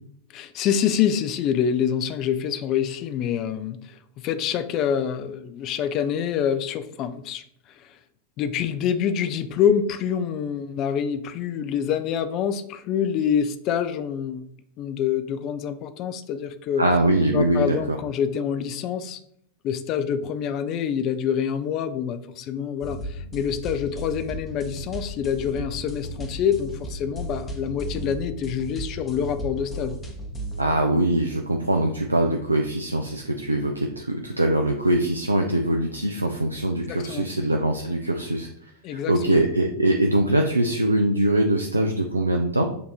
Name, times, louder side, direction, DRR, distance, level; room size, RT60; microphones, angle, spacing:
voice 1, 0.3-8.0 8.4-14.4 14.8-16.8 17.3-19.2 19.6-30.0 36.9-37.3 38.8-39.4, left 8 dB, 35° left, 10 dB, 0.4 m, -26 dB
voice 2, 16.8-18.0 30.6-38.5 38.9-42.6, right 1 dB, 85° right, 3 dB, 0.3 m, -22 dB
sound 1, 22.8-30.6, right 1 dB, 20° left, 0.8 m, -35 dB
6.7 x 2.6 x 2.8 m, 0.70 s
figure-of-eight pair, 90°, 0 cm